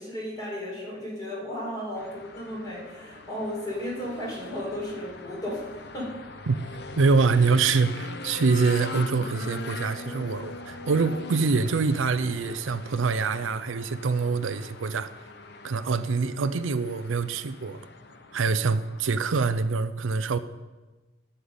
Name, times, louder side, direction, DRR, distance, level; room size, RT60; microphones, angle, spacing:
voice 1, 0.0-6.1, left 1 dB, 20° left, 4.1 m, -34 dB
sound 1, 2.0-19.6, left 2 dB, 55° left, 0.8 m, -41 dB
voice 2, 7.0-15.1 15.6-17.8 18.3-20.4, right 4 dB, 85° right, 0.5 m, -25 dB
11.5 x 5.7 x 8.0 m
head